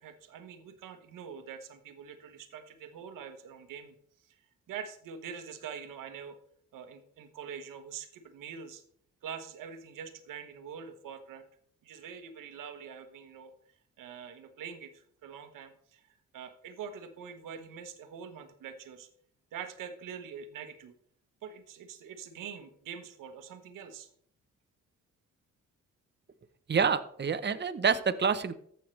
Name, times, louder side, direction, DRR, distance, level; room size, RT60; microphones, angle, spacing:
voice 1, 0.0-3.9 4.2-4.4 4.7-6.4 6.7-8.8 9.2-11.4 11.8-13.5 14.0-19.1 19.5-20.9 21.4-24.1, right 7 dB, 80° right, 8 dB, 1.2 m, -44 dB
voice 2, 26.7-28.5, right 6 dB, 35° right, 11 dB, 0.9 m, -27 dB
14.5 x 5.6 x 3.3 m, 0.64 s
supercardioid pair, 55°, 32 cm